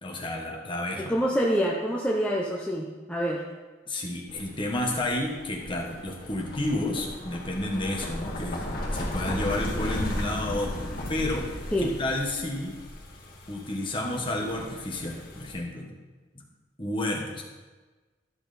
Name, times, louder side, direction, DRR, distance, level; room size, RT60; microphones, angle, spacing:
voice 1, 0.0-1.1 3.9-11.5 11.8-12.8 13.5-15.9 16.8-17.5, left 1 dB, 25° left, 0 dB, 1.4 m, -31 dB
voice 2, 1.0-3.4 11.7-11.9, equal, 5° left, -4 dB, 0.7 m, -26 dB
sound 1, 4.3-15.5, left 1 dB, 50° left, 1.8 m, -36 dB
12.5 x 5.9 x 4.2 m, 1.3 s
head